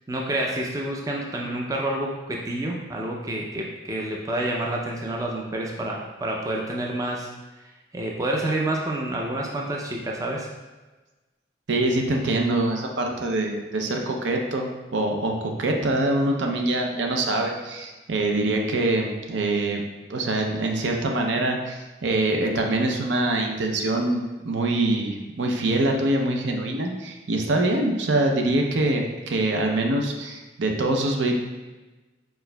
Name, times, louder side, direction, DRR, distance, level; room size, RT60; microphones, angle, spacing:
voice 1, 0.1-7.3 7.9-10.5, right 1 dB, 20° right, -1 dB, 0.4 m, -28 dB
voice 2, 11.7-19.8 20.1-31.4, right 2 dB, 75° right, 2 dB, 0.6 m, -24 dB
4.4 x 4.4 x 2.2 m, 1.2 s
head